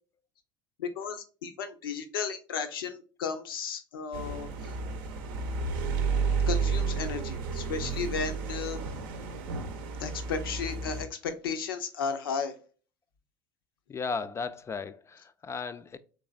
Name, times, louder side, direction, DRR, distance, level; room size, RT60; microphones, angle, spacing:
voice 1, 0.8-4.7 6.4-8.8 10.0-12.5, left 5 dB, 85° left, 0.6 m, -34 dB
sound 1, 4.1-11.0, right 5 dB, 70° right, 0.6 m, -31 dB
voice 2, 13.9-16.0, left 5 dB, 25° left, 0.3 m, -35 dB
3.3 x 3.2 x 2.3 m
hypercardioid pair, 75°, 12 cm